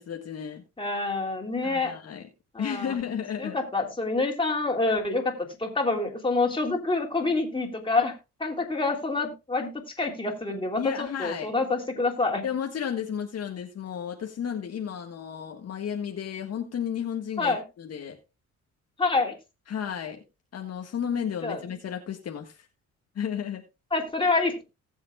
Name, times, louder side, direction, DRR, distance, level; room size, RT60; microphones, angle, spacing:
voice 1, 0.0-0.6 1.6-2.2 2.6-3.6 10.8-11.5 12.4-18.2 19.7-20.2 20.5-22.7 23.1-23.6, left 8 dB, 55° left, 1.6 m, -33 dB
voice 2, 0.8-2.0 2.5-3.0 3.4-12.4 17.4-17.6 19.0-19.3 21.4-21.6 23.9-24.6, left 3 dB, 15° left, 3.3 m, -27 dB
19.0 x 7.4 x 2.4 m
cardioid pair, 90°, 30 cm